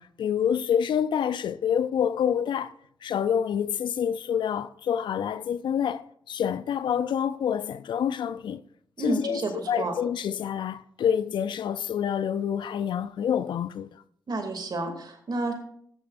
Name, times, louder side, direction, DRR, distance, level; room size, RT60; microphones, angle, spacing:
voice 1, 0.0-2.7 3.0-8.6 9.0-13.9, left 8 dB, 70° left, 0.5 m, -27 dB
voice 2, 9.0-9.9 14.3-15.5, right 2 dB, 55° right, 2.6 m, -30 dB
13.5 x 11.0 x 2.6 m
supercardioid pair, 40°, 8 cm